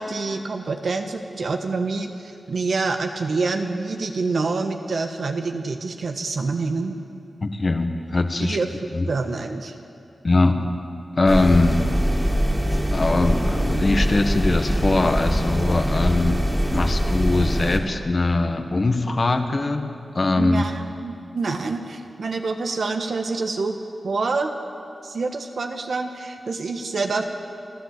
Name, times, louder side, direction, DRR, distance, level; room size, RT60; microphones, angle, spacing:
voice 1, 0.0-6.9 8.4-9.7 20.4-23.8 24.0-24.5 25.0-27.2, right 3 dB, 75° right, 4 dB, 1.3 m, -27 dB
voice 2, 7.4-8.6 8.9-9.0 10.2-10.7 11.1-11.8 12.9-16.4 16.7-19.9 20.1-20.6, left 2 dB, 45° left, 6 dB, 1.5 m, -21 dB
sound 1, 11.3-17.8, equal, 10° right, 2.7 m, -23 dB
30.0 x 11.5 x 8.2 m, 2.5 s
wide cardioid pair, 80°, 0 cm